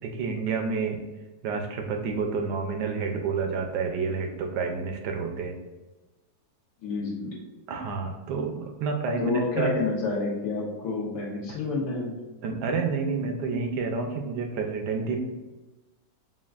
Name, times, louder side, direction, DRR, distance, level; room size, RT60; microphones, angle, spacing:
voice 1, 0.0-1.0 1.4-5.6 7.7-9.7 11.5-11.6 12.4-15.2, right 4 dB, 75° right, 4 dB, 1.1 m, -29 dB
voice 2, 6.8-7.3 9.2-12.2, left 3 dB, 85° left, -3 dB, 1.6 m, -29 dB
5.7 x 2.3 x 2.4 m, 1.1 s
omnidirectional pair, 1.9 m